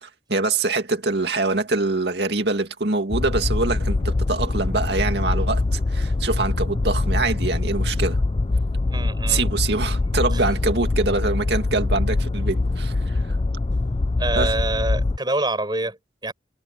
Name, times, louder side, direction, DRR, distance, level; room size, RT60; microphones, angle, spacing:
voice 1, 0.0-8.2 9.3-13.4 14.4-14.5, right 3 dB, 60° right, 2.4 m, -24 dB
sound 1, 3.1-15.2, left 2 dB, 30° left, 0.4 m, -23 dB
voice 2, 8.9-9.4 10.3-10.4 14.2-16.3, right 2 dB, 25° right, 7.3 m, -26 dB
head